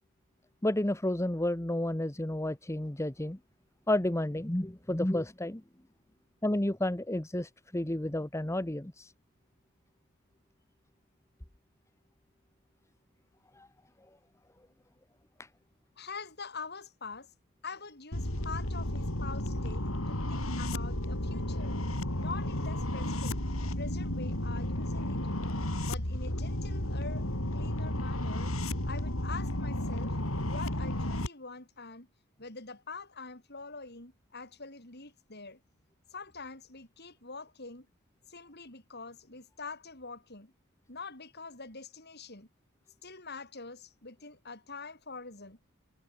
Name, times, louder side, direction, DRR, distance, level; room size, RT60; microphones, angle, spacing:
voice 1, 0.6-3.4 3.9-5.6 6.4-9.1 13.6-13.7 15.4-15.5, left 1 dB, 15° left, 1.0 m, -31 dB
voice 2, 16.0-17.3 17.6-21.8 22.2-23.4 23.8-25.5 25.9-27.3 27.5-28.5 28.8-30.1 30.5-32.1 32.4-35.6 36.1-37.9 38.3-40.5 40.9-42.5 43.0-45.6, left 4 dB, 50° left, 6.2 m, -45 dB
sound 1, 18.1-31.3, left 1 dB, 70° left, 4.6 m, -33 dB
head